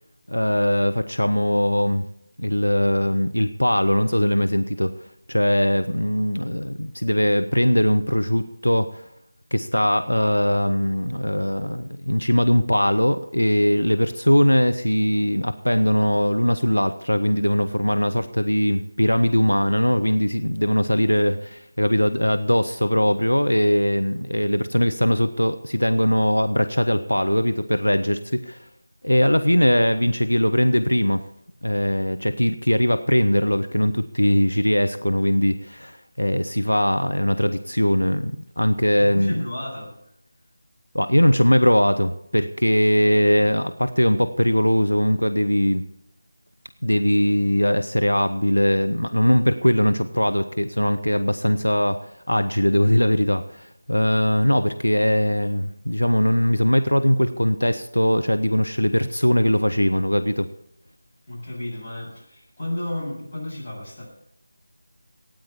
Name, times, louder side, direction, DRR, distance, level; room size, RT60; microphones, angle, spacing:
voice 1, 0.3-2.0 2.4-4.9 5.3-9.1 9.5-28.7 29.0-31.2 31.6-39.5 40.9-45.8 46.8-60.5, equal, 85° left, 9 dB, 1.0 m, -20 dB
voice 2, 39.0-39.9 61.3-64.1, left 1 dB, 30° left, -5 dB, 7.6 m, -32 dB
17.0 x 9.5 x 7.1 m, 0.76 s
figure-of-eight pair, 165°, 0 cm